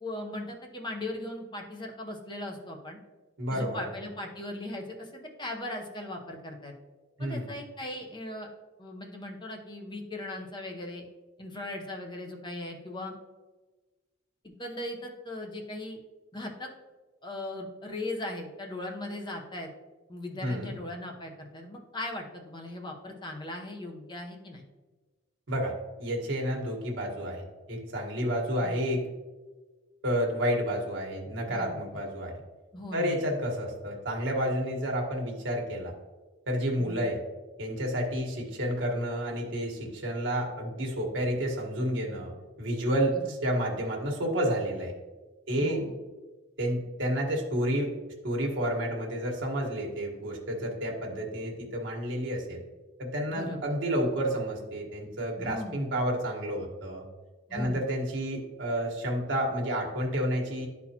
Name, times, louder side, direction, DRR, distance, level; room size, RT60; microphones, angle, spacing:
voice 1, 0.0-3.0 3.5-6.7 7.2-8.5 8.8-11.0 11.4-13.2 14.6-16.0 16.3-16.7 17.2-19.7 20.1-24.6 28.6-28.9 31.5-31.8 32.7-33.1 36.8-37.1 43.2-43.3 45.5-46.0 53.3-53.8 55.4-55.8 57.5-57.9, left 1 dB, 25° left, 1 dB, 0.8 m, -38 dB
voice 2, 3.4-3.9 7.2-7.5 20.4-20.8 25.5-25.7 26.0-29.0 30.0-32.3 32.9-35.9 36.5-37.2 37.6-44.9 45.5-45.9 46.6-47.9 48.2-52.6 53.0-57.0 57.5-60.7, equal, 65° right, -1 dB, 1.4 m, -30 dB
11.0 x 4.2 x 2.8 m, 1.3 s
head